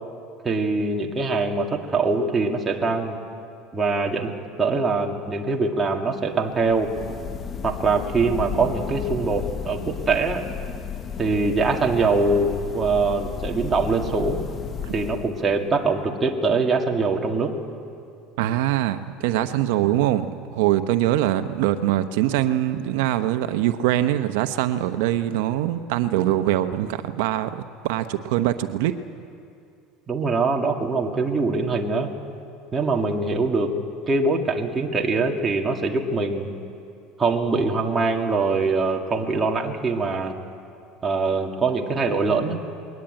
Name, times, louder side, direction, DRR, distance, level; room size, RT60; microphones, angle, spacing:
voice 1, 0.4-3.2 3.7-4.3 4.6-7.0 7.6-10.5 11.2-14.4 14.9-17.6 30.1-32.1 32.7-33.8 34.1-36.5 37.2-40.4 41.0-42.6, right 3 dB, 20° right, 1 dB, 2.1 m, -23 dB
sound 1, 6.5-15.7, left 7 dB, 30° left, 0.9 m, -33 dB
voice 2, 18.4-28.9, right 13 dB, 80° right, 9 dB, 0.8 m, -23 dB
21.0 x 19.5 x 9.0 m, 2.5 s
supercardioid pair, 130°, 0 cm